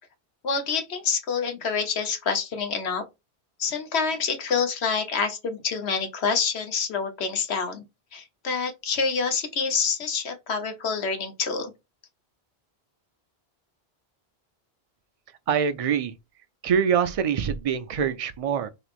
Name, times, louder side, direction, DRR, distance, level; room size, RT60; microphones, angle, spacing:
voice 1, 0.4-3.1 3.6-7.8 8.1-11.7, left 5 dB, 85° left, 1.2 m, -27 dB
voice 2, 15.5-16.1 16.6-18.7, right 7 dB, 50° right, 0.4 m, -24 dB
3.5 x 3.1 x 2.4 m
omnidirectional pair, 1.1 m